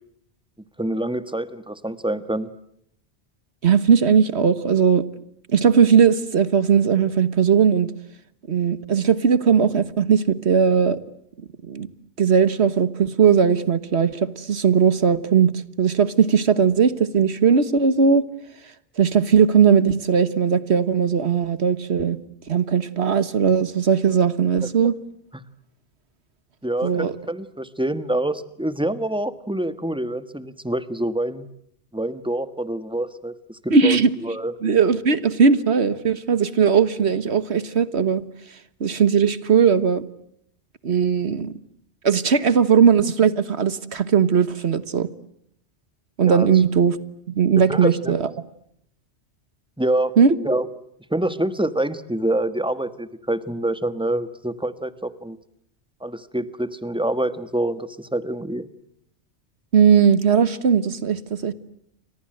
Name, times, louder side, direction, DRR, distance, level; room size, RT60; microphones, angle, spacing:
voice 1, 0.8-2.5 25.3-25.4 26.6-31.5 31.9-34.5 46.2-46.5 47.6-48.2 49.8-50.1 50.4-50.7 51.1-55.4 56.0-58.6, right 1 dB, 5° right, 12 dB, 1.4 m, -26 dB
voice 2, 3.6-5.0 5.5-7.9 8.5-11.0 11.6-11.9 12.2-18.2 19.0-22.2 22.5-24.9 26.8-27.1 33.7-34.1 34.6-38.2 38.8-40.0 40.8-41.5 42.0-45.1 46.2-47.0 47.4-48.3 50.2-50.4 59.7-61.5, right 6 dB, 70° right, 14 dB, 1.5 m, -18 dB
30.0 x 25.5 x 7.8 m, 0.74 s
omnidirectional pair, 1.2 m